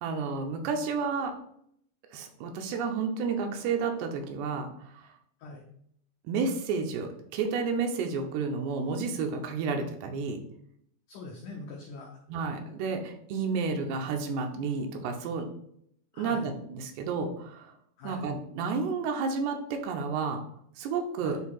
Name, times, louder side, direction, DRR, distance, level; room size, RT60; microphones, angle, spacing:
voice 1, 0.0-1.3 2.1-5.1 6.2-10.4 12.3-15.5 16.2-17.7 18.0-20.4 20.8-21.4, right 5 dB, 85° right, 4 dB, 3.0 m, -31 dB
voice 2, 11.1-12.2 16.1-16.5 18.0-18.2 21.2-21.4, left 3 dB, 85° left, 0 dB, 1.8 m, -43 dB
10.5 x 4.6 x 2.4 m, 0.70 s
omnidirectional pair, 4.8 m